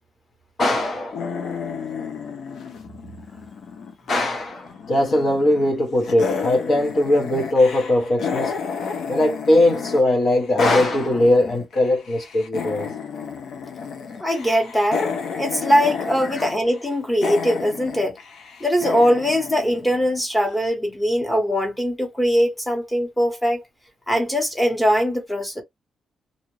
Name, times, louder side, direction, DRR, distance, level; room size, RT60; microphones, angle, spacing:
voice 1, 0.6-1.3 4.1-8.5 9.1-12.9 16.3-16.5, left 1 dB, 45° left, 1.0 m, -20 dB
sound 1, 1.1-4.2 4.5-5.7 6.0-10.0 10.3-20.3, left 5 dB, 65° left, 0.7 m, -31 dB
voice 2, 14.2-15.0 15.4-18.2 18.6-23.6 24.1-25.6, equal, 10° left, 1.1 m, -21 dB
2.7 x 2.4 x 3.1 m
cardioid pair, 140°, 0 cm